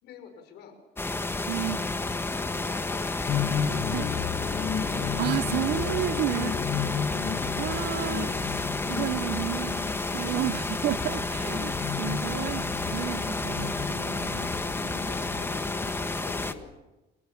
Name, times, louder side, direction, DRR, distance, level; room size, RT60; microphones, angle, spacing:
voice 1, 0.0-0.8 2.3-4.7 7.9-8.5 14.6-16.7, left 6 dB, 80° left, 5.9 m, -48 dB
sound 1, 1.0-16.5, left 3 dB, 15° left, 1.5 m, -31 dB
voice 2, 1.5-1.9 3.9-4.1 5.2-6.8 7.5-8.3 8.9-9.8 10.1-14.5 14.8-14.9, right 16 dB, 80° right, 0.8 m, -32 dB
sound 2, 3.3-16.0, left 8 dB, 55° left, 1.7 m, -34 dB
28.5 x 18.5 x 7.2 m
cardioid pair, 110°, 17 cm